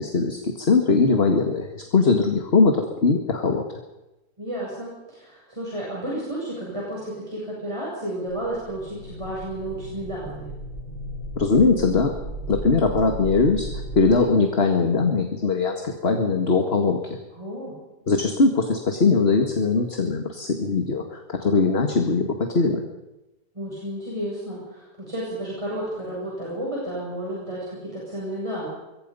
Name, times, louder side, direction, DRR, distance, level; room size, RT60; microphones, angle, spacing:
voice 1, 0.0-3.6 11.4-12.1 12.5-13.7 13.9-17.2 18.1-22.3 22.5-22.8, left 4 dB, 40° left, 4 dB, 2.1 m, -21 dB
voice 2, 4.4-10.5 17.3-17.7 23.5-28.7, right 1 dB, 15° right, -6 dB, 8.0 m, -32 dB
sound 1, 8.3-14.1, right 1 dB, 80° right, 8.3 m, -35 dB
26.0 x 23.0 x 5.6 m, 1.0 s
omnidirectional pair, 1.7 m